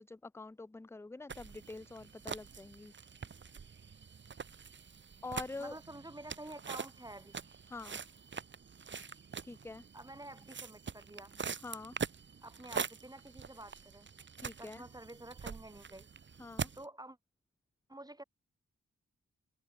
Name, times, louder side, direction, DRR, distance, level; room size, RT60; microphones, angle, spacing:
voice 1, 0.0-2.9 5.2-5.8 7.7-8.0 9.4-9.9 11.6-12.0 14.4-14.8 16.4-16.7, left 3 dB, 10° left, 0.4 m, -45 dB
sound 1, 1.3-16.8, right 6 dB, 40° right, 0.7 m, -44 dB
voice 2, 5.6-7.5 9.9-11.4 12.4-14.1 14.6-16.1 16.8-17.2 17.9-18.2, right 1 dB, 15° right, 3.7 m, -49 dB
wide cardioid pair, 135°, 29 cm